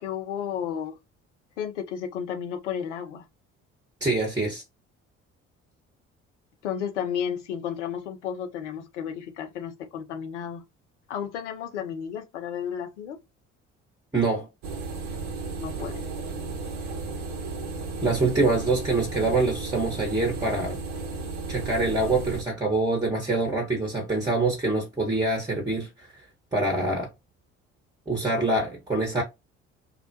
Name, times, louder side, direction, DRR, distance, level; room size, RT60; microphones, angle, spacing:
voice 1, 0.0-1.0 1.6-3.2 6.6-10.6 11.1-13.2 15.4-16.1, left 8 dB, 80° left, 0.5 m, -33 dB
voice 2, 4.0-4.6 14.1-14.5 18.0-20.8 21.5-26.1 26.5-27.1 28.1-29.2, right 2 dB, 10° right, 1.0 m, -25 dB
sound 1, 14.6-22.4, right 3 dB, 50° right, 0.8 m, -34 dB
2.3 x 2.1 x 2.6 m
figure-of-eight pair, 50°, 36 cm